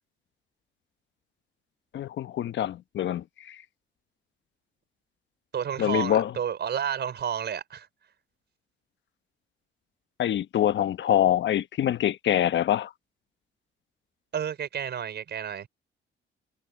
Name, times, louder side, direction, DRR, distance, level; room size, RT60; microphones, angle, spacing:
voice 1, 1.9-3.6 5.8-6.3 10.2-12.9, left 11 dB, 70° left, 1.1 m, -25 dB
voice 2, 5.5-7.9 14.3-15.7, right 8 dB, 60° right, 5.3 m, -31 dB
cardioid pair, 90°, 20 cm